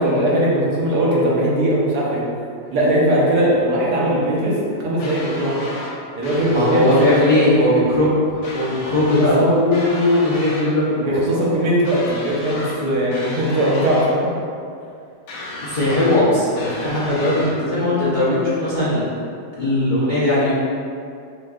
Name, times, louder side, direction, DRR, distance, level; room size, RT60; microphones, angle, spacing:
voice 1, 0.0-2.2 2.7-5.6 6.1-7.5 9.2-9.5 11.0-14.3, right 1 dB, 75° right, -5 dB, 1.3 m, -19 dB
sound 1, 5.0-5.9 6.2-7.3 8.4-9.4 9.7-10.7 11.8-12.8 13.1-14.1 15.3-16.2 16.6-17.5, left 2 dB, 85° left, 1.4 m, -33 dB
voice 2, 6.5-11.2 15.6-19.0 19.5-20.5, left 1 dB, 35° left, -12 dB, 0.8 m, -18 dB
6.2 x 2.6 x 2.4 m, 2.4 s
omnidirectional pair, 1.8 m